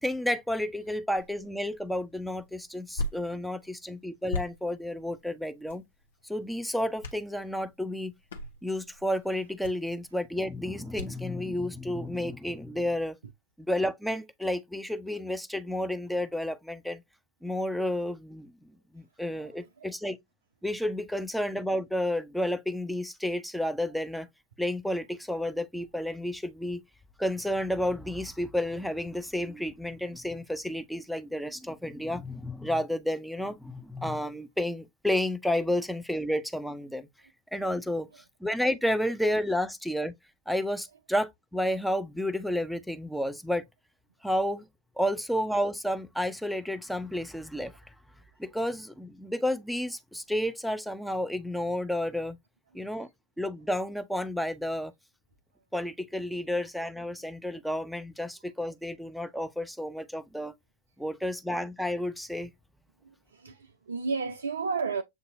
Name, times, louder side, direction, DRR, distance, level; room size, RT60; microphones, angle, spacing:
voice 1, 0.0-5.8 6.2-8.1 8.6-13.2 13.6-17.0 17.4-20.2 20.6-24.3 24.6-26.8 27.2-37.1 37.5-40.1 40.5-43.6 44.2-44.7 45.0-47.8 48.4-52.4 52.7-53.1 53.4-54.9 55.7-60.5 61.0-62.5, left 1 dB, ahead, 0.5 m, -31 dB
sound 1, 1.1-11.3, left 2 dB, 65° left, 1.0 m, -42 dB
voice 2, 19.3-19.9 63.0-65.0, right 4 dB, 70° right, 0.4 m, -33 dB
7.6 x 2.7 x 2.5 m
figure-of-eight pair, 90°, 0 cm